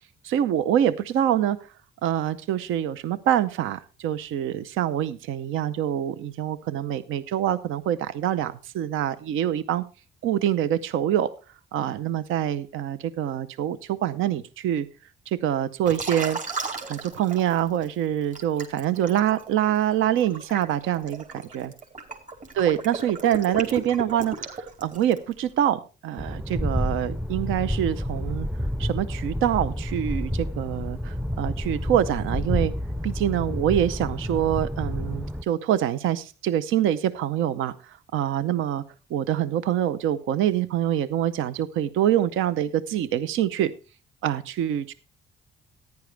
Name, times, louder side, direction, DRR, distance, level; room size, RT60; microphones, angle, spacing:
voice 1, 0.2-1.6 2.0-9.8 10.2-11.3 11.7-14.9 15.3-16.4 16.9-21.7 22.6-28.5 28.8-32.7 33.0-38.8 39.1-43.7 44.2-44.9, right 11 dB, 90° right, 14 dB, 0.7 m, -25 dB
Liquid, 15.9-17.9 18.3-25.3, right 3 dB, 40° right, 3.9 m, -35 dB
sound 1, 26.2-35.4, equal, 5° right, 0.5 m, -29 dB
14.5 x 10.5 x 3.3 m, 0.34 s
cardioid pair, 90°, 20 cm